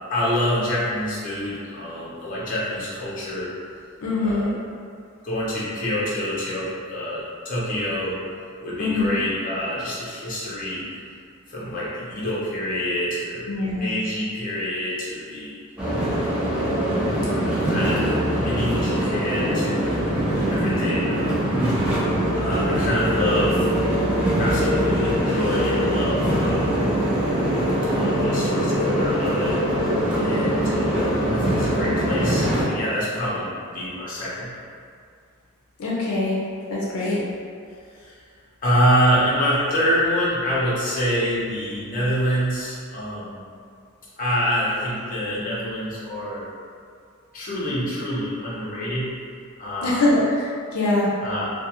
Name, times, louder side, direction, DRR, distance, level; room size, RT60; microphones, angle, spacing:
voice 1, 0.1-3.5 4.2-4.6 5.2-8.2 8.6-10.9 11.5-15.5 16.0-16.4 17.4-19.9 20.5-21.6 22.4-23.7 24.4-26.8 27.9-29.6 30.2-34.6 37.0-37.2 37.9-38.1 38.6-43.4 44.2-46.5 47.3-49.1 49.6-50.0 51.2-51.5, equal, 40° left, -8 dB, 0.7 m, -26 dB
voice 2, 4.0-4.5 8.8-9.2 13.5-13.9 35.8-36.4 36.7-37.2 49.8-51.1, left 2 dB, 85° left, -5 dB, 0.5 m, -23 dB
sound 1, 15.8-32.6, equal, 5° right, 0.5 m, -22 dB
2.3 x 2.3 x 2.9 m, 2.2 s
head